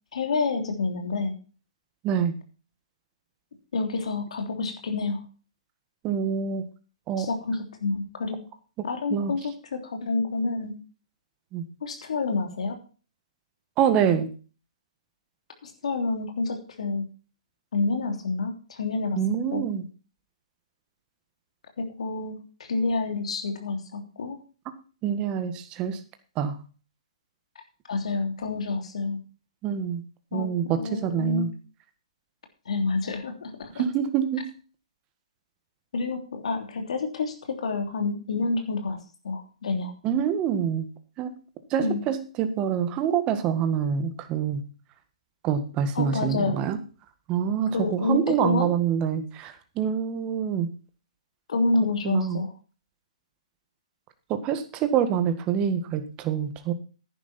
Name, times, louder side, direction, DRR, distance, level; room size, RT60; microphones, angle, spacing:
voice 1, 0.1-1.3 3.7-5.2 7.2-8.4 8.8-10.7 11.8-12.8 15.6-17.1 17.7-19.2 19.5-19.6 21.8-22.4 22.7-24.4 27.9-29.2 30.3-31.5 32.6-33.8 35.9-39.0 39.2-39.9 41.8-42.0 45.9-46.6 47.7-48.7 51.5-52.5, left 3 dB, 70° left, 5 dB, 3.2 m, -28 dB
voice 2, 2.0-2.3 6.0-6.6 7.1-7.3 8.8-9.3 11.5-11.6 13.8-14.3 19.2-19.8 25.0-26.0 26.4-26.5 29.6-30.0 30.3-31.5 33.8-34.5 40.0-40.9 41.2-41.3 41.7-44.6 45.4-46.8 47.3-50.7 52.0-52.4 54.3-56.7, right 8 dB, 25° right, 9 dB, 1.7 m, -26 dB
10.5 x 10.5 x 4.3 m, 0.36 s
hypercardioid pair, 140°, 4 cm